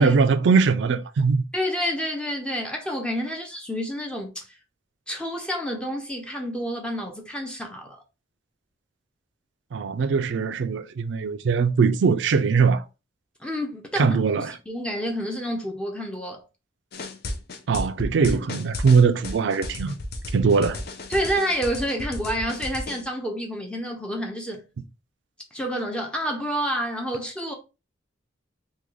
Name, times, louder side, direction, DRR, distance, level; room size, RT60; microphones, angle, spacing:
voice 1, 0.0-1.4 9.7-12.8 14.0-14.6 17.7-20.0 20.3-20.8, right 5 dB, 70° right, 0.4 m, -21 dB
voice 2, 1.5-4.5 5.1-8.0 13.4-14.2 14.7-16.4 21.1-24.6 25.5-27.5, equal, 5° left, 0.5 m, -29 dB
sound 1, 16.9-23.0, left 1 dB, 55° left, 0.6 m, -33 dB
3.6 x 2.2 x 3.1 m
head